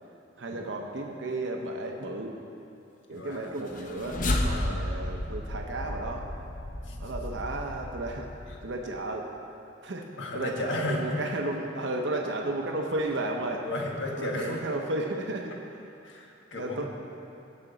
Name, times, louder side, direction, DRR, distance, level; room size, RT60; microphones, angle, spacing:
voice 1, 0.4-2.4 3.1-6.3 7.0-8.3 8.6-9.3 9.8-10.1 10.3-13.7 14.2-15.5 16.5-16.9, right 2 dB, 75° right, 2 dB, 0.8 m, -33 dB
voice 2, 3.1-3.5 4.5-4.9 6.8-7.0 10.2-11.0 13.6-14.6 16.0-16.9, left 2 dB, 80° left, 0 dB, 1.3 m, -34 dB
sound 1, 3.6-8.9, left 1 dB, 45° left, 0.7 m, -33 dB
16.5 x 6.0 x 4.0 m, 2.8 s
head